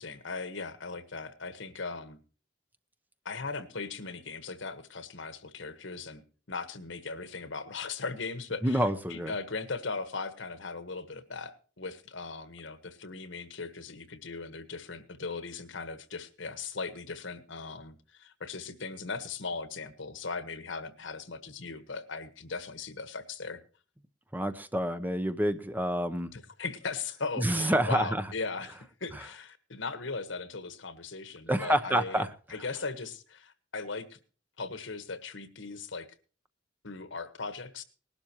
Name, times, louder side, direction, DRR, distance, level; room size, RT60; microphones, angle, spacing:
voice 1, 0.0-2.2 3.2-6.2 6.5-23.6 26.3-34.2 34.6-36.1 36.8-37.8, left 4 dB, 80° left, 13 dB, 1.4 m, -38 dB
voice 2, 8.6-9.3 24.3-26.3 27.4-28.2 31.5-32.3, right 1 dB, 10° right, 10 dB, 0.8 m, -28 dB
19.5 x 12.0 x 3.0 m, 0.39 s
head